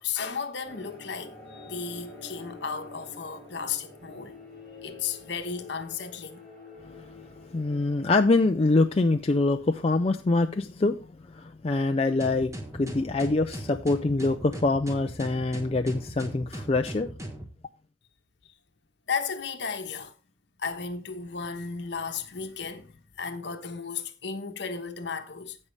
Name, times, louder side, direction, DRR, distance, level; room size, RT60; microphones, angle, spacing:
voice 1, 0.0-4.3 4.8-6.4 19.1-20.1 20.6-25.6, left 6 dB, 60° left, 1.1 m, -34 dB
sound 1, 0.6-8.3, left 2 dB, 5° left, 5.1 m, -48 dB
voice 2, 7.5-17.1, left 2 dB, 30° left, 0.4 m, -25 dB
sound 2, 12.2-17.5, right 1 dB, 15° right, 1.1 m, -39 dB
15.5 x 5.5 x 3.2 m
head